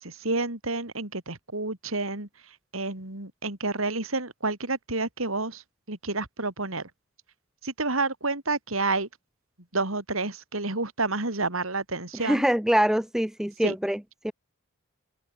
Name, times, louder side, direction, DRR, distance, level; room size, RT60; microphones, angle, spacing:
voice 1, 0.0-2.3 2.7-5.6 5.9-6.9 7.6-9.1 9.7-12.4 13.6-13.7, right 3 dB, 70° right, 4.2 m, -29 dB
voice 2, 12.2-14.3, equal, ahead, 0.4 m, -24 dB
head